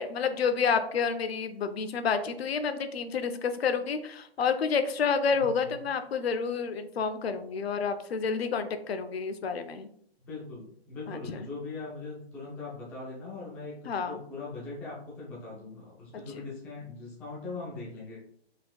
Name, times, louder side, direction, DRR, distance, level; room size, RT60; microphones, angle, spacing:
voice 1, 0.0-9.9 11.1-11.4 13.9-14.2 16.3-16.4, left 5 dB, 70° left, 9 dB, 0.7 m, -29 dB
voice 2, 5.3-5.8 10.2-18.3, left 3 dB, 5° left, -6 dB, 0.4 m, -41 dB
4.4 x 3.6 x 2.3 m, 0.65 s
hypercardioid pair, 135°, 32 cm